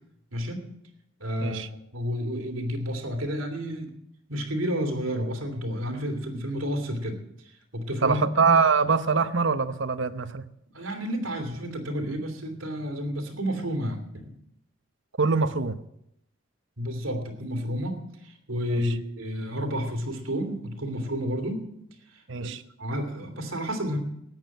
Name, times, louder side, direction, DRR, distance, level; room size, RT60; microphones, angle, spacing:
voice 1, 0.3-0.7 1.2-3.9 4.3-7.2 7.7-8.2 10.7-14.3 16.8-21.6 22.4-22.5 22.8-24.0, equal, 80° right, 5 dB, 2.8 m, -31 dB
voice 2, 8.0-10.4 15.2-15.8 18.7-19.0 22.3-22.6, right 5 dB, 65° right, 11 dB, 0.9 m, -24 dB
13.5 x 9.2 x 9.0 m, 0.76 s
head